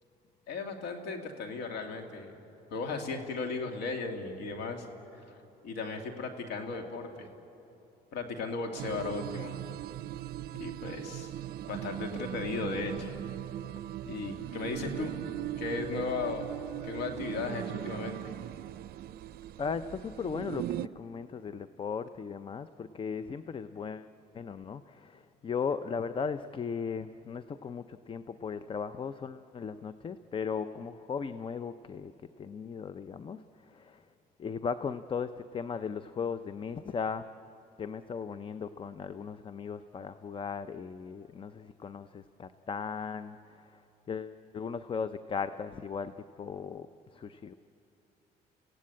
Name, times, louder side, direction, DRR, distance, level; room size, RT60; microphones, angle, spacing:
voice 1, 0.5-2.4 2.7-4.9 5.6-7.3 8.1-9.5 10.5-11.3 11.7-13.2 14.1-15.1 15.6-16.5 16.8-18.3, left 4 dB, 80° left, 5 dB, 2.5 m, -36 dB
sound 1, 8.8-20.9, right 13 dB, 65° right, 0.5 m, -39 dB
voice 2, 19.6-24.1 24.3-32.1 32.4-34.0 34.4-37.3 37.8-43.4 44.1-46.9 47.1-47.5, left 6 dB, 30° left, 12 dB, 0.6 m, -37 dB
29.5 x 16.5 x 8.6 m, 2.9 s
cardioid pair, 110°, 17 cm